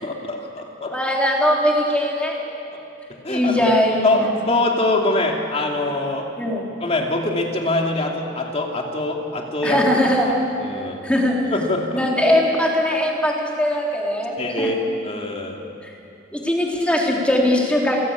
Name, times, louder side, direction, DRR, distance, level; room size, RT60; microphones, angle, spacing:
voice 1, 0.0-1.0 3.1-3.7 4.0-6.3 6.8-9.8 10.3-11.1 11.5-12.0 14.4-15.6, left 2 dB, 35° left, 1 dB, 2.8 m, -24 dB
voice 2, 0.9-2.4 3.3-4.3 6.4-6.6 9.6-10.3 11.0-11.4 11.9-14.7 15.8-15.9 16.3-18.0, left 1 dB, 5° left, -2 dB, 3.8 m, -20 dB
28.5 x 17.0 x 8.5 m, 2.6 s
head